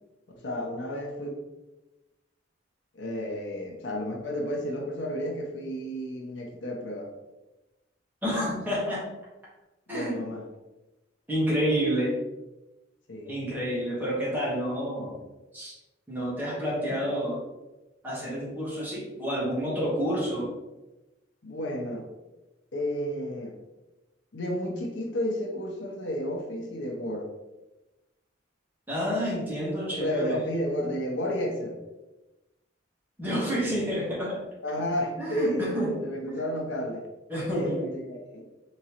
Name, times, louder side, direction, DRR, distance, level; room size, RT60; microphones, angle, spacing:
voice 1, 0.4-1.3 2.9-7.1 9.9-10.4 13.1-13.4 16.9-17.0 21.4-22.1 22.7-23.5 24.3-27.3 29.9-31.8 33.7-33.9 34.6-35.6 36.0-37.0 37.5-38.5, left 1 dB, 80° left, 1 dB, 0.7 m, -32 dB
voice 2, 8.2-9.1 9.9-10.2 11.3-12.2 13.2-15.2 15.5-15.8 16.1-17.4 18.0-20.5 28.9-30.4 33.2-34.4 35.2-35.9 36.3-36.5 37.3-38.0, equal, 10° right, -7 dB, 1.2 m, -29 dB
3.7 x 3.0 x 2.9 m, 1.0 s
head